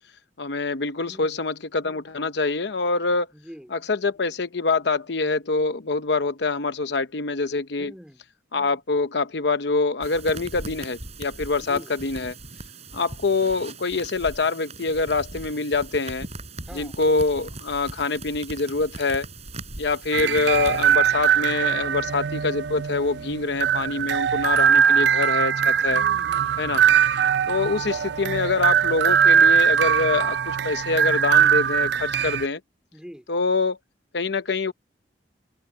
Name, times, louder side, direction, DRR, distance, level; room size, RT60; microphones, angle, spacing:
voice 1, 0.4-3.3 3.7-7.9 8.5-12.3 12.9-16.3 16.7-19.3 19.8-26.0 26.6-26.8 27.5-32.6 33.3-33.8 34.1-34.7, left 3 dB, 65° left, 0.8 m, -25 dB
voice 2, 1.1-1.4 3.3-3.7 7.8-8.2 11.6-11.9 16.7-17.0 25.9-26.6 32.9-33.3, equal, 5° right, 2.4 m, -44 dB
sound 1, 10.0-21.0, right 2 dB, 35° right, 7.0 m, -39 dB
sound 2, 20.1-32.5, right 8 dB, 65° right, 0.4 m, -21 dB
head